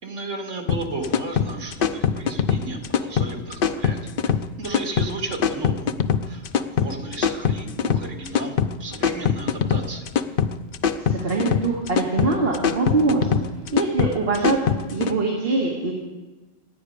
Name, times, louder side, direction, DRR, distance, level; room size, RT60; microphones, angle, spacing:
voice 1, 0.0-4.0 4.3-5.9 6.3-10.1, right 2 dB, 75° right, 2 dB, 2.7 m, -34 dB
sound 1, 0.7-15.1, left 7 dB, 55° left, 0.8 m, -23 dB
voice 2, 11.0-13.4 13.7-14.6 14.9-15.9, right 3 dB, 50° right, -1 dB, 2.1 m, -23 dB
27.0 x 9.4 x 5.0 m, 1.2 s
omnidirectional pair, 1.3 m